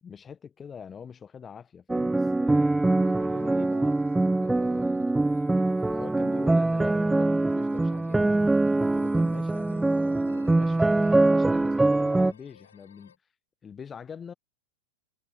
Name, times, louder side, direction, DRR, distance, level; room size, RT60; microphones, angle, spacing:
voice 1, 0.0-4.0 4.3-5.2 5.7-8.4 8.8-13.1 13.6-14.3, left 7 dB, 20° left, 1.0 m, -44 dB
sound 1, 1.9-12.3, right 2 dB, 5° right, 0.4 m, -23 dB
sound 2, 2.1-13.2, left 7 dB, 70° left, 4.1 m, -59 dB
figure-of-eight pair, 90°, 0 cm